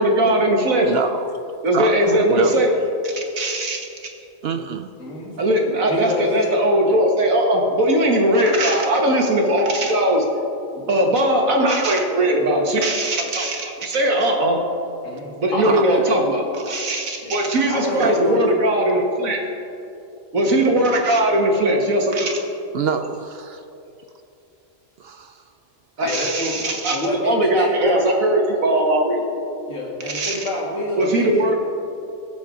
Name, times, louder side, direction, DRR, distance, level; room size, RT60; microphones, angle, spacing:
voice 1, 0.0-0.9 1.6-3.8 5.4-10.2 10.9-14.6 15.4-19.4 20.3-22.4 26.0-29.3 30.1-30.4 31.0-31.6, right 1 dB, 90° right, 1 dB, 2.1 m, -19 dB
voice 2, 0.8-1.3 1.7-2.6 4.4-4.9 15.6-15.8 18.0-18.1 22.7-23.6 25.0-25.3, right 6 dB, 60° right, 8 dB, 0.7 m, -26 dB
voice 3, 5.0-5.3 5.9-6.5 15.0-16.2 17.2-17.3 17.6-18.5 26.0-28.2 29.7-31.6, left 1 dB, 75° left, -3 dB, 2.7 m, -27 dB
22.0 x 7.4 x 3.8 m, 2.8 s
omnidirectional pair, 1.4 m